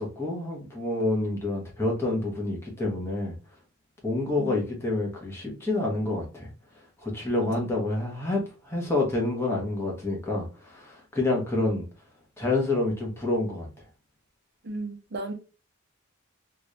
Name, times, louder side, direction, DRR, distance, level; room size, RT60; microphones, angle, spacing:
voice 1, 0.0-3.3 4.0-6.5 7.0-11.8 12.4-13.7, left 2 dB, 10° left, 1.1 m, -28 dB
voice 2, 7.4-7.8 14.6-15.3, right 2 dB, 50° right, 0.8 m, -36 dB
3.0 x 2.6 x 3.1 m
head